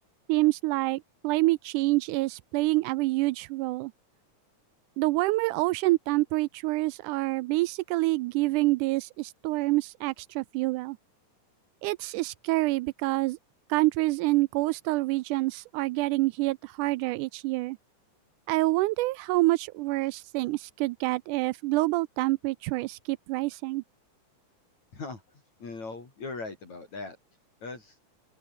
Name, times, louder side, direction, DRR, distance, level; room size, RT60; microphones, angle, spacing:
voice 1, 0.3-3.9 5.0-11.0 11.8-13.4 13.7-17.8 18.5-23.8, right 20 dB, 80° right, 1.9 m, -27 dB
voice 2, 25.6-27.2 27.6-28.0, left 3 dB, 55° left, 6.7 m, -39 dB
open air
omnidirectional pair, 3.9 m